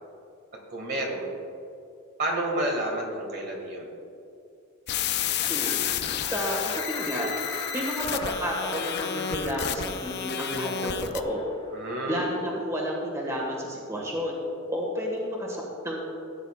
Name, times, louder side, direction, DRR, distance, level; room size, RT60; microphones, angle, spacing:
voice 1, 0.7-1.3 2.2-3.9 11.7-12.3, right 1 dB, 50° right, -1 dB, 1.9 m, -30 dB
sound 1, 4.9-11.2, left 10 dB, 50° left, 0.4 m, -31 dB
Laughter, 5.0-11.8, left 3 dB, 25° left, 0.9 m, -40 dB
voice 2, 5.5-6.0 6.3-7.3 7.7-11.4 12.1-14.4 14.7-16.0, equal, 15° right, -2 dB, 1.6 m, -31 dB
15.5 x 9.2 x 2.4 m, 2.6 s
head